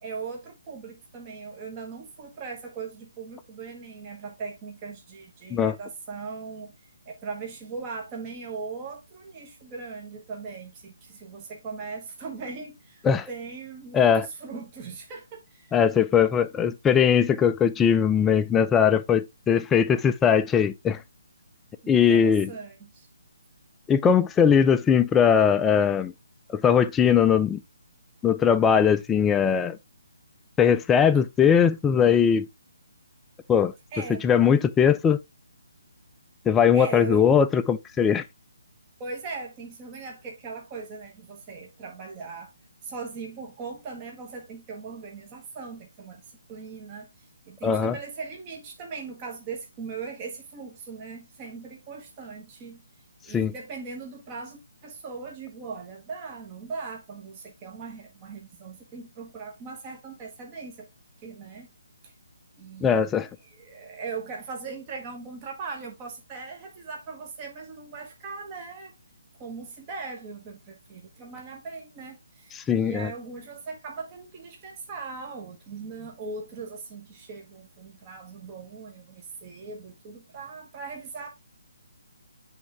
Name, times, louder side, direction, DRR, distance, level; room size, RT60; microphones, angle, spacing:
voice 1, 0.0-6.7 7.1-15.8 21.8-23.1 33.9-34.3 36.7-37.2 39.0-42.5 42.8-46.2 46.5-52.8 53.2-60.9 61.2-61.7 62.0-62.1 62.6-63.1 63.4-68.9 69.4-81.3, right 4 dB, 25° right, 1.2 m, -39 dB
voice 2, 13.9-14.3 15.7-21.0 21.9-22.5 23.9-26.1 26.5-27.6 28.2-29.8 30.6-32.4 33.5-33.7 34.2-35.2 36.5-38.2 47.6-47.9 53.3-53.5 62.8-63.3 72.5-73.1, left 7 dB, 10° left, 0.3 m, -20 dB
8.2 x 3.6 x 3.3 m
figure-of-eight pair, 140°, 0 cm